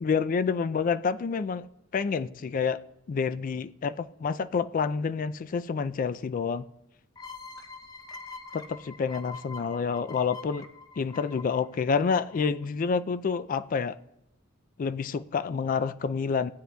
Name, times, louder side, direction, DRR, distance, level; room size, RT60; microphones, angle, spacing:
voice 1, 0.0-1.7 1.9-2.8 3.1-6.7 8.5-10.7 11.0-14.0 14.8-16.5, left 5 dB, 40° left, 0.3 m, -28 dB
sound 1, 7.2-12.6, left 4 dB, 20° left, 0.7 m, -45 dB
16.0 x 9.4 x 2.3 m
head